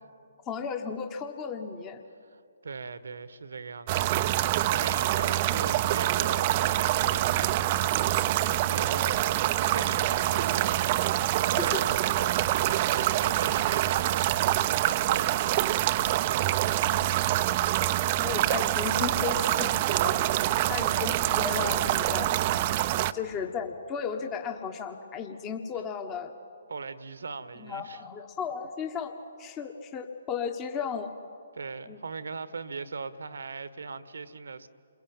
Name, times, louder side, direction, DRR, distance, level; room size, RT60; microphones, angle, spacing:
voice 1, 0.4-2.0 5.5-5.6 11.6-11.8 18.2-20.2 20.7-22.3 22.6-26.3 27.6-31.1 31.9-32.0, left 6 dB, 20° left, 1.5 m, -35 dB
voice 2, 2.2-4.2 4.7-17.0 20.5-20.9 26.7-28.0 31.5-34.7, right 4 dB, 70° right, 1.4 m, -40 dB
sound 1, 3.9-23.1, right 14 dB, 35° right, 0.7 m, -26 dB
28.5 x 22.5 x 8.9 m
figure-of-eight pair, 135°, 0 cm